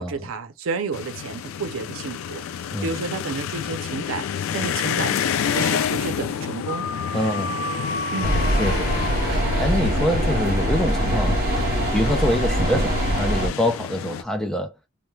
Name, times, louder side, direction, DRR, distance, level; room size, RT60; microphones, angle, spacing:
voice 1, 0.0-2.4 2.8-4.3 4.5-5.2 5.5-6.9 8.1-8.5, right 4 dB, 85° right, 0.5 m, -31 dB
sound 1, 0.9-14.2, left 8 dB, 85° left, 0.3 m, -29 dB
sound 2, 6.6-11.2, left 1 dB, 50° left, 0.9 m, -33 dB
voice 2, 7.1-7.6 8.6-9.0 9.3-11.6 11.9-14.7, left 1 dB, 5° left, 0.4 m, -25 dB
sound 3, 8.2-13.5, right 1 dB, 45° right, 0.9 m, -23 dB
2.2 x 2.1 x 3.1 m
head